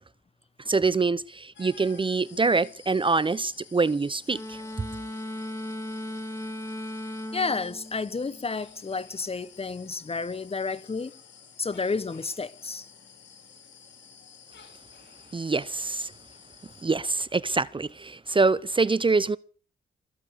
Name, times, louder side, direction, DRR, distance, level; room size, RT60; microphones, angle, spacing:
voice 1, 0.7-4.6 15.3-16.1 16.8-19.4, right 3 dB, 25° right, 0.7 m, -25 dB
sound 1, 1.5-16.8, left 6 dB, 70° left, 3.8 m, -52 dB
sound 2, 4.3-8.7, left 1 dB, 15° left, 2.8 m, -37 dB
voice 2, 7.3-11.1 11.6-12.9, left 4 dB, 30° left, 1.1 m, -31 dB
22.0 x 7.4 x 8.1 m
cardioid pair, 60°, 19 cm